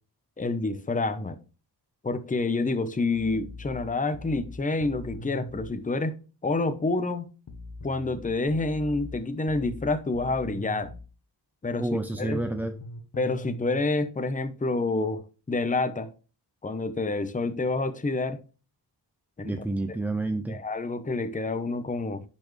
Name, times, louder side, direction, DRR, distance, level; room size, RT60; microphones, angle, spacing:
voice 1, 0.4-1.4 2.0-6.1 6.4-7.3 7.8-10.9 11.6-12.4 13.2-16.1 16.6-18.4 19.4-19.5 20.5-22.2, left 3 dB, 20° left, 0.8 m, -28 dB
sound 1, 3.1-5.7 7.5-11.1 12.1-13.8, left 2 dB, 45° left, 1.0 m, -41 dB
voice 2, 11.8-12.8 19.4-20.6, right 2 dB, 5° right, 0.4 m, -29 dB
10.5 x 4.4 x 3.1 m
wide cardioid pair, 120°, 43 cm